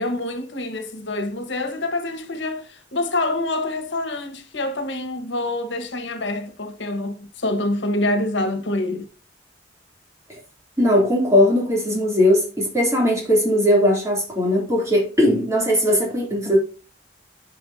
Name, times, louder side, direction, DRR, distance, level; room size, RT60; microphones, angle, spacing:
voice 1, 0.0-9.0, left 2 dB, 80° left, 1.4 m, -26 dB
voice 2, 10.8-16.6, left 1 dB, 15° right, 3.2 m, -19 dB
10.5 x 5.9 x 2.8 m
head